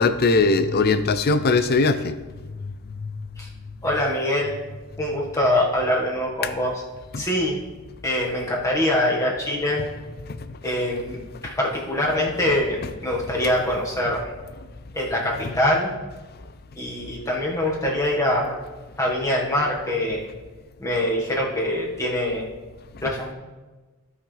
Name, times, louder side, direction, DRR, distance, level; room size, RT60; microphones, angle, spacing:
voice 1, 0.0-2.1 2.5-3.3 7.1-7.2 10.2-10.6 23.0-23.1, left 3 dB, 45° left, 11 dB, 0.5 m, -21 dB
voice 2, 3.8-4.6 5.0-6.7 7.2-7.6 8.0-9.8 10.6-14.3 14.9-15.9 16.8-18.6 19.0-20.2 20.8-22.5 23.0-23.3, left 1 dB, 15° left, -3 dB, 1.7 m, -24 dB
15.5 x 5.6 x 3.4 m, 1.3 s
head